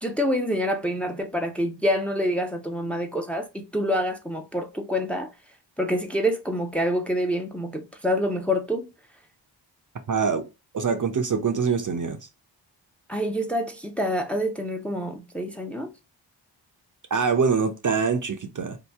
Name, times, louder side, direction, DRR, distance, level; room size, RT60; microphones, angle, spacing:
voice 1, 0.0-5.3 5.8-8.9 13.1-15.9, equal, 5° left, 0.7 m, -27 dB
voice 2, 10.1-10.4 10.7-12.2 17.1-18.8, right 5 dB, 40° right, 0.6 m, -24 dB
2.9 x 2.5 x 3.4 m
cardioid pair, 50°, 46 cm